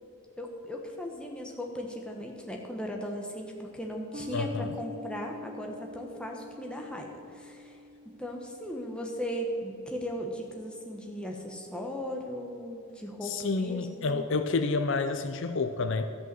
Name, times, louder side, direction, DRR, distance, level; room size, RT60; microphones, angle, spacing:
voice 1, 0.4-7.8 8.2-14.3, equal, 5° left, 0 dB, 1.1 m, -37 dB
sound 1, 4.1-10.9, left 1 dB, 40° right, 0.4 m, -47 dB
voice 2, 4.3-4.8 13.2-16.1, left 4 dB, 55° left, 9 dB, 0.5 m, -29 dB
13.5 x 5.6 x 7.6 m, 2.6 s
head